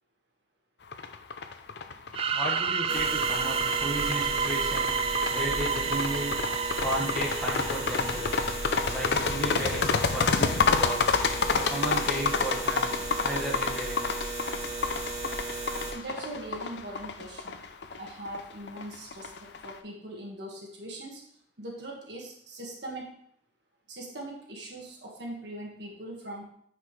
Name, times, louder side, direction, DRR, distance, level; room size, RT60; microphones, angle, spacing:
sound 1, 0.9-19.7, left 5 dB, 70° left, 0.6 m, -30 dB
sound 2, 2.1-8.8, right 6 dB, 30° right, 0.3 m, -30 dB
voice 1, 2.3-4.9 5.3-6.3 6.8-8.4 8.9-11.1 11.5-14.1, right 1 dB, 5° left, -5 dB, 1.5 m, -34 dB
sound 3, 2.9-15.9, right 2 dB, 15° right, 2.0 m, -36 dB
voice 2, 15.9-17.6 18.0-21.2 21.6-23.1 23.9-26.5, right 1 dB, 70° right, 0 dB, 1.7 m, -41 dB
9.5 x 5.0 x 3.3 m, 0.66 s
head